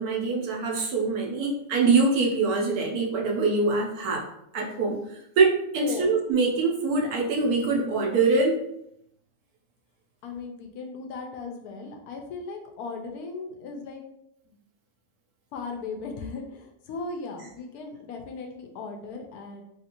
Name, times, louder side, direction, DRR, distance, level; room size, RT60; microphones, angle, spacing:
voice 1, 0.0-4.2 4.5-8.6, right 3 dB, 80° right, 0 dB, 1.2 m, -24 dB
voice 2, 10.2-14.0 14.5-14.6 15.5-19.6, left 4 dB, 85° left, 4 dB, 1.1 m, -37 dB
3.1 x 2.5 x 2.8 m, 0.78 s
omnidirectional pair, 1.6 m